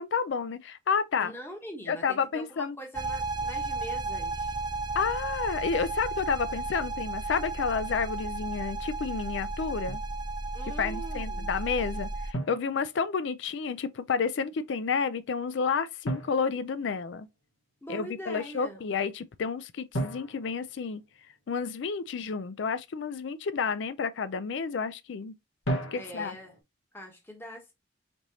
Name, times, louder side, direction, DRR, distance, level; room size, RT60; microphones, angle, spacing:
voice 1, 0.0-1.3 1.9-2.8 4.9-10.0 10.8-17.3 17.9-21.0 21.5-25.3 25.9-26.3, left 5 dB, 65° left, 0.4 m, -30 dB
voice 2, 1.2-4.6 10.5-11.6 17.8-18.8 26.0-26.6 26.9-27.7, right 1 dB, 10° left, 0.9 m, -43 dB
sound 1, 2.9-12.3, right 3 dB, 20° right, 0.4 m, -34 dB
Drum, 9.9-10.2 12.3-13.5 16.0-17.5 19.9-21.6 25.6-26.6, right 1 dB, 85° left, 1.2 m, -36 dB
5.2 x 3.0 x 2.7 m
head